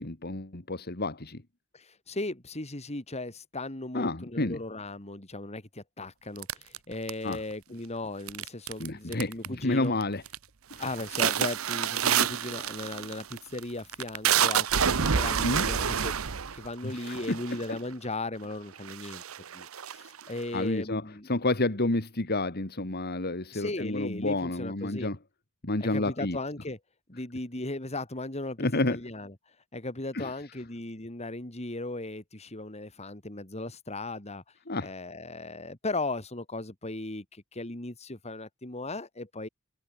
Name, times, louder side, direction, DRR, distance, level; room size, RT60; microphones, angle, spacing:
voice 1, 0.0-1.4 3.9-4.6 7.2-7.4 8.8-10.2 15.4-15.7 17.1-17.4 20.5-21.0 21.3-25.2 25.6-26.4 28.6-29.0 30.1-30.3 34.7-34.9, left 2 dB, 50° left, 2.1 m, -29 dB
voice 2, 1.7-10.0 10.8-16.1 16.5-19.2 19.5-21.3 23.5-25.1 25.8-26.8 27.1-29.4 29.7-34.4 34.8-39.5, left 2 dB, 30° left, 3.0 m, -37 dB
sound 1, 6.4-7.5 8.3-8.9 9.1-9.6 10.0-10.4 10.7-17.8 18.4-18.5 18.8-20.4, right 8 dB, 75° right, 0.9 m, -28 dB
head